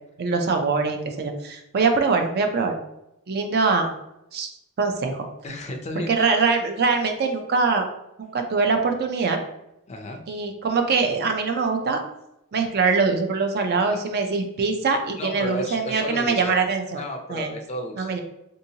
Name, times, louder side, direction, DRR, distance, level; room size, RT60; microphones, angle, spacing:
voice 1, 0.2-2.8 3.3-3.9 4.3-4.5 4.8-5.3 6.1-7.9 8.2-9.4 10.3-12.0 12.5-17.0 17.3-17.5 18.0-18.2, right 4 dB, 45° right, 5 dB, 0.4 m, -23 dB
voice 2, 5.4-6.1 9.9-10.2 13.9-14.0 15.2-16.6 17.0-18.2, left 1 dB, 30° left, 3 dB, 0.4 m, -33 dB
3.6 x 2.7 x 2.7 m, 0.85 s
head